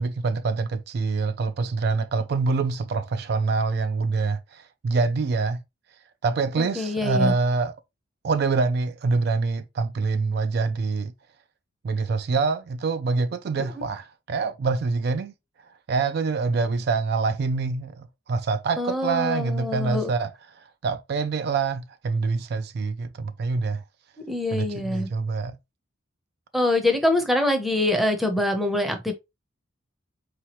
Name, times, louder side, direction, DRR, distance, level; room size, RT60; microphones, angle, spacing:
voice 1, 0.0-5.6 6.2-7.7 8.2-11.1 11.8-15.3 15.9-20.3 20.6-23.8 24.5-25.6, right 4 dB, 50° right, 0.3 m, -25 dB
voice 2, 6.6-7.3 13.6-13.7 18.8-20.1 24.3-25.1 26.5-29.1, left 1 dB, ahead, 0.6 m, -24 dB
4.6 x 2.9 x 2.9 m
head